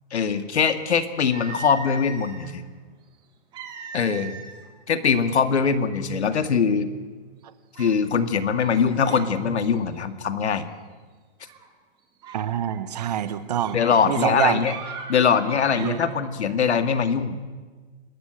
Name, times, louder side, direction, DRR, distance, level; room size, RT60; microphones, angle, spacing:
voice 1, 0.1-2.6 3.9-4.4 4.9-6.9 7.8-10.7 13.7-14.7 15.1-17.3, left 6 dB, 90° left, 10 dB, 2.2 m, -22 dB
sound 1, 1.3-2.5 3.5-4.7 5.0-5.3 5.9-6.0 6.5-7.0 7.7-8.0 8.6-9.3 9.6-10.0 11.4-11.7 12.2-16.0, right 5 dB, 15° right, 1.7 m, -40 dB
voice 2, 12.3-13.8 14.1-14.6 15.8-16.0, right 10 dB, 40° right, 13 dB, 1.1 m, -25 dB
28.0 x 13.5 x 9.1 m, 1.4 s
hypercardioid pair, 170°, 33 cm